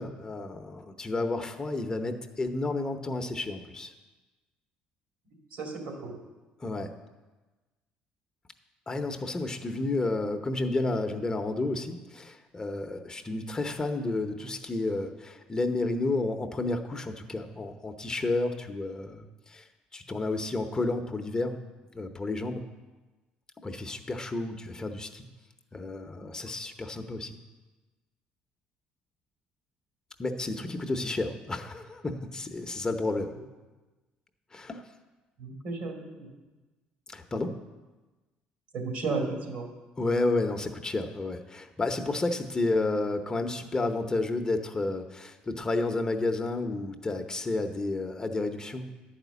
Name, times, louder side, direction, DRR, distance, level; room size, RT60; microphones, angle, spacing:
voice 1, 0.0-3.9 6.6-6.9 8.9-19.7 19.9-21.6 21.9-22.6 23.6-25.2 25.7-27.4 30.2-33.3 34.5-34.8 37.1-37.6 40.0-48.9, left 2 dB, 25° left, 6 dB, 0.8 m, -31 dB
voice 2, 5.5-6.1 35.4-36.3 38.7-39.7, right 3 dB, 70° right, 2 dB, 2.3 m, -33 dB
10.5 x 5.0 x 8.2 m, 1.2 s
supercardioid pair, 90°, 3 cm